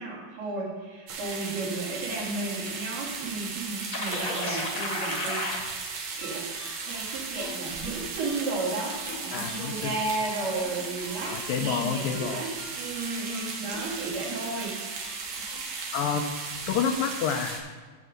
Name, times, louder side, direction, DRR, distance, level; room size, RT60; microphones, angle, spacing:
voice 1, 0.0-5.7 6.2-6.5 6.8-15.4, right 3 dB, 85° right, -4 dB, 4.3 m, -34 dB
sound 1, 1.1-17.6, right 4 dB, 65° right, 2.6 m, -36 dB
sound 2, 3.9-5.6, left 2 dB, 40° left, 1.2 m, -31 dB
sound 3, 6.1-15.6, left 3 dB, 60° left, 1.5 m, -48 dB
voice 2, 9.3-10.0 11.2-12.5 15.9-16.3 16.7-17.7, left 7 dB, 80° left, 6 dB, 2.1 m, -29 dB
11.0 x 7.3 x 5.1 m, 1.5 s
omnidirectional pair, 4.4 m